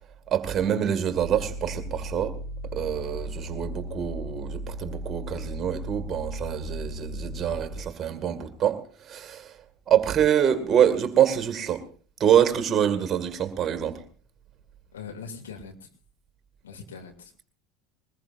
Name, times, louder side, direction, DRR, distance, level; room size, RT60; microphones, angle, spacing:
voice 1, 0.3-2.3 2.7-9.6 9.9-11.8 12.2-14.0, right 9 dB, 30° right, 9 dB, 2.1 m, -25 dB
sound 1, 1.1-7.8, equal, 15° left, 6.3 m, -36 dB
voice 2, 14.9-15.9 16.6-17.4, left 5 dB, 75° left, 3 dB, 2.8 m, -41 dB
21.5 x 20.5 x 2.6 m, 0.43 s
figure-of-eight pair, 70°, 0 cm